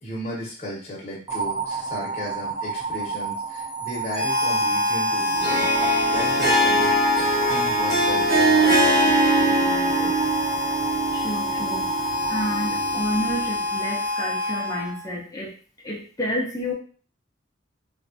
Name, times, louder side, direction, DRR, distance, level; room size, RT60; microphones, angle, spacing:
voice 1, 0.0-5.7 6.1-6.9 7.5-10.1, equal, 35° left, -4 dB, 0.9 m, -35 dB
sound 1, 1.3-13.4, right 5 dB, 20° right, 0.8 m, -32 dB
Harmonica, 4.1-15.1, left 1 dB, 90° right, 1.0 m, -27 dB
Harp, 5.3-13.6, right 1 dB, 55° right, 1.2 m, -22 dB
voice 2, 11.1-11.9 12.3-15.5 15.8-16.7, equal, 20° left, -3 dB, 0.5 m, -30 dB
3.2 x 2.3 x 2.6 m, 0.40 s
head